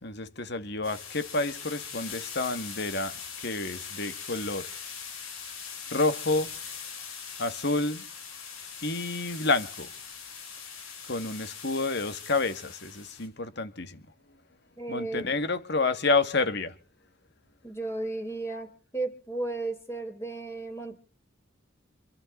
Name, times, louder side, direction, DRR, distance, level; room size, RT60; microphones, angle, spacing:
voice 1, 0.0-4.7 5.9-6.5 7.4-8.0 8.8-9.9 11.1-14.1 14.9-16.7, left 3 dB, 55° left, 1.9 m, -29 dB
sound 1, 0.8-13.3, left 6 dB, 85° left, 7.5 m, -41 dB
voice 2, 14.8-15.3 17.6-21.0, right 2 dB, 15° left, 3.9 m, -34 dB
26.5 x 12.5 x 3.9 m
head